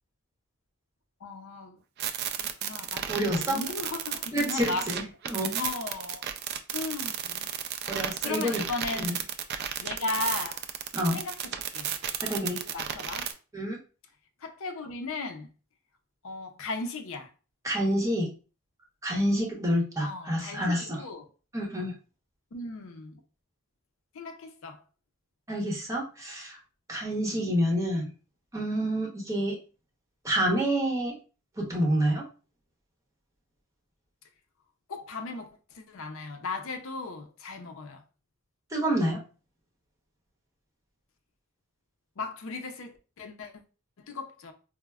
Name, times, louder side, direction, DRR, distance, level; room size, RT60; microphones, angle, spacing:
voice 1, 1.2-1.8 2.4-4.9 5.6-6.2 6.7-7.5 8.2-9.3 9.8-10.6 11.1-11.9 12.6-13.3 14.4-15.5 16.2-17.3 20.0-21.3 22.5-23.2 24.1-24.8 27.3-27.5 34.9-38.0 42.2-43.5 44.0-44.5, left 3 dB, 65° left, 0.5 m, -36 dB
sound 1, 2.0-13.3, right 9 dB, 50° right, 0.3 m, -33 dB
voice 2, 3.1-3.6 4.3-5.6 7.9-8.6 9.0-9.1 10.9-11.2 12.2-12.6 13.5-13.8 17.6-18.3 19.0-21.0 21.5-21.9 25.5-26.6 26.9-28.1 28.5-29.6 30.2-31.1 31.6-32.2 38.7-39.2, equal, 15° right, 0.9 m, -28 dB
4.3 x 2.0 x 2.2 m
head